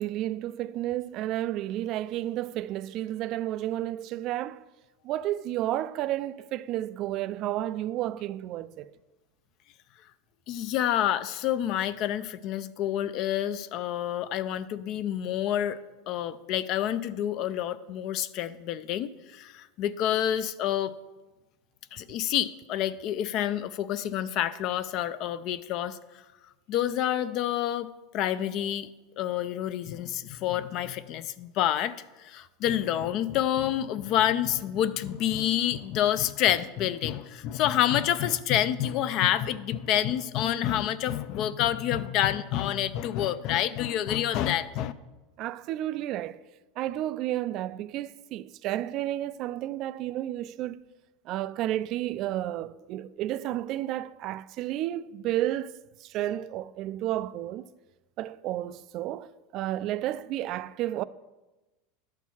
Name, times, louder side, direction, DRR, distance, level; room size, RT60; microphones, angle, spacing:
voice 1, 0.0-4.6 5.0-8.8 45.4-46.4 46.8-50.8 51.3-55.7 56.0-57.7 58.2-61.0, right 13 dB, 45° right, 0.3 m, -31 dB
voice 2, 10.5-15.8 16.1-20.9 21.9-26.0 26.7-28.9 29.2-44.9, left 11 dB, 45° left, 0.4 m, -28 dB
11.0 x 4.6 x 7.1 m
supercardioid pair, 145°, 0 cm